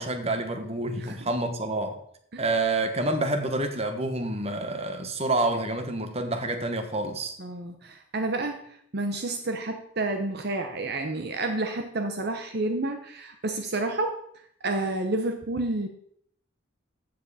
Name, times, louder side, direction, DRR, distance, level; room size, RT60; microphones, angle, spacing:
voice 1, 0.0-2.0 2.4-7.3, right 2 dB, 35° right, 1.4 m, -28 dB
voice 2, 7.4-14.2 14.6-15.9, right 2 dB, 55° right, 0.9 m, -30 dB
14.5 x 7.8 x 4.2 m
head